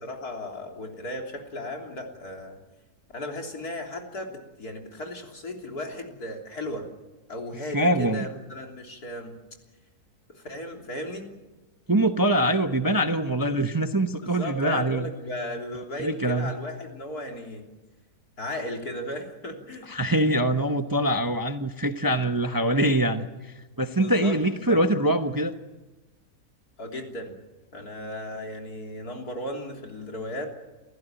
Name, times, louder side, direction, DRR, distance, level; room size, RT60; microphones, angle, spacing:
voice 1, 0.0-2.6 3.1-6.9 7.3-9.4 10.4-11.3 14.2-17.6 18.4-19.9 23.9-24.8 26.8-27.4 27.7-30.5, left 1 dB, 75° left, 2 dB, 3.9 m, -36 dB
voice 2, 7.7-8.3 11.9-15.1 16.0-16.5 19.9-25.5, right 1 dB, 15° right, 7 dB, 0.8 m, -24 dB
29.0 x 15.5 x 9.0 m, 1.1 s
omnidirectional pair, 1.6 m